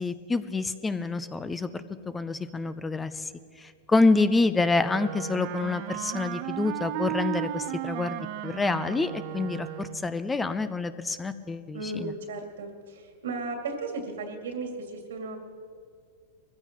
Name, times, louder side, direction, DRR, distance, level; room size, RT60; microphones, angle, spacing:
voice 1, 0.0-3.3 3.6-12.1, left 3 dB, 10° left, 13 dB, 0.5 m, -27 dB
Wind instrument woodwind instrument, 4.8-10.2, right 14 dB, 55° right, 0.5 m, -35 dB
voice 2, 11.7-15.4, right 3 dB, 90° right, 3 dB, 2.3 m, -35 dB
21.5 x 15.0 x 3.0 m, 2.1 s
hypercardioid pair, 135°, 0 cm